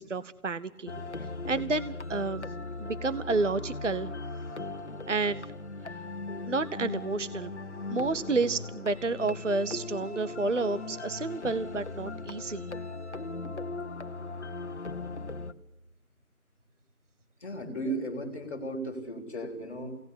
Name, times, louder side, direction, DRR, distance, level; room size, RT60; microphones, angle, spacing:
voice 1, 0.1-0.9 1.5-2.5 2.8-4.1 5.1-5.5 6.5-7.5 7.9-12.7, right 3 dB, 55° right, 15 dB, 0.8 m, -30 dB
sound 1, 0.9-15.5, left 3 dB, 50° left, 1.3 m, -38 dB
voice 2, 17.4-20.0, right 1 dB, 10° left, -11 dB, 2.2 m, -35 dB
24.5 x 18.0 x 8.2 m, 0.92 s
figure-of-eight pair, 175°, 44 cm